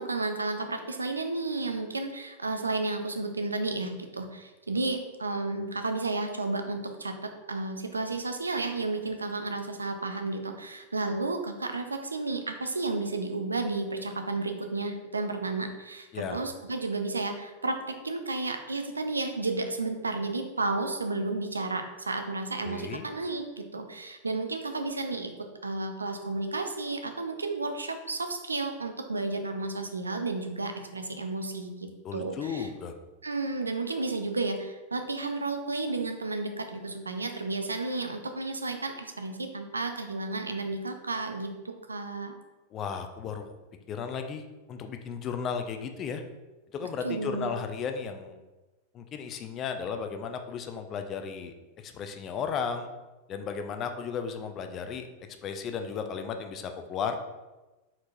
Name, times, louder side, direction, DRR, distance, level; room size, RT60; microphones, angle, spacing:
voice 1, 0.0-25.3 25.6-32.7 33.2-42.3 47.0-47.5, right 3 dB, 80° right, 6 dB, 0.4 m, -32 dB
voice 2, 22.6-23.1 32.0-32.9 42.7-43.5 43.9-44.4 44.7-46.2 46.7-48.4 48.9-51.5 51.8-52.9 53.3-55.1 55.4-57.2, left 6 dB, 30° left, 7 dB, 0.4 m, -34 dB
4.5 x 4.3 x 2.5 m, 1.1 s
figure-of-eight pair, 90°, 0 cm